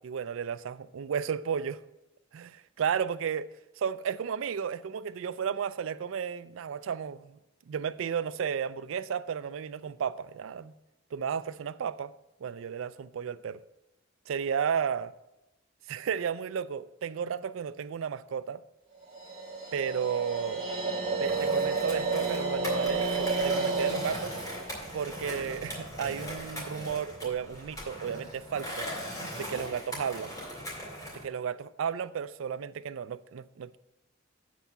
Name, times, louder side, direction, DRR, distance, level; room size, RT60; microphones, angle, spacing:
voice 1, 0.0-1.8 2.3-3.5 3.8-7.4 7.7-10.7 11.1-12.1 12.4-13.6 14.3-15.1 15.9-18.6 19.7-20.6 21.2-24.3 24.9-28.9 29.3-30.3 31.1-33.8, right 7 dB, 75° right, 0.4 m, -33 dB
sound 1, 19.1-26.2, right 3 dB, 30° right, 2.4 m, -32 dB
Skateboard, 21.2-31.2, equal, 20° left, 3.1 m, -40 dB
8.2 x 4.5 x 7.1 m
head